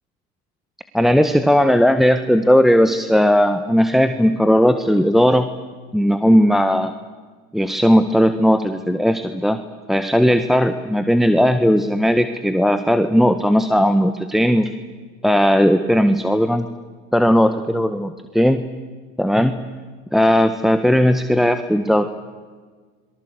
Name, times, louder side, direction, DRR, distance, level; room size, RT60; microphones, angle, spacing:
voice 1, 0.9-5.5 5.9-6.9 7.5-9.6 9.9-14.7 15.2-16.6 17.1-18.6 19.2-19.6 20.1-22.1, equal, ahead, 8 dB, 1.5 m, -16 dB
28.0 x 23.5 x 8.3 m, 1.5 s
hypercardioid pair, 85°, 44 cm